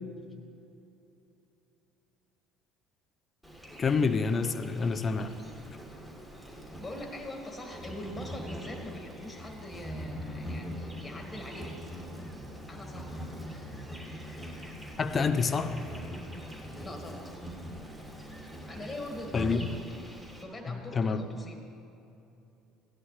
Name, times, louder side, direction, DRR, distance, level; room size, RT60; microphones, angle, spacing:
Insect, 3.4-20.4, equal, 5° right, 2.9 m, -42 dB
voice 1, 3.8-5.3 15.0-15.8 19.3-19.6 20.7-21.2, left 5 dB, 35° left, 11 dB, 0.7 m, -27 dB
voice 2, 6.8-11.9 12.7-13.2 16.8-17.3 18.6-19.6 20.4-21.6, left 1 dB, 20° left, 2 dB, 2.1 m, -42 dB
16.0 x 11.0 x 3.4 m, 2.8 s
hypercardioid pair, 75°, 0 cm